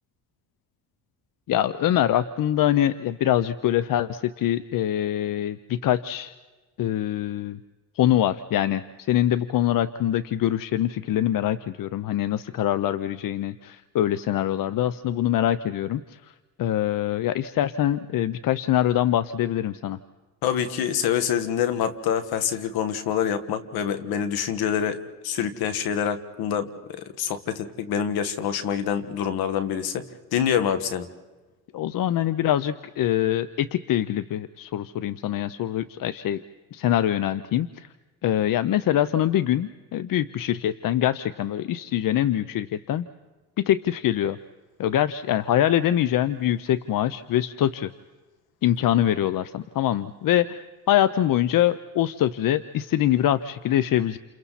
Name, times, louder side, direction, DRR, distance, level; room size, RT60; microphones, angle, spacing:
voice 1, 1.5-6.3 6.8-7.6 8.0-16.3 16.6-20.0 31.7-36.4 36.7-37.9 38.2-43.1 43.6-44.4 44.8-47.9 48.6-54.2, left 12 dB, 65° left, 14 dB, 0.8 m, -24 dB
voice 2, 20.4-25.0 25.2-31.1, left 8 dB, 80° left, 10 dB, 1.8 m, -26 dB
29.5 x 28.0 x 4.2 m, 1.2 s
cardioid pair, 90°, 36 cm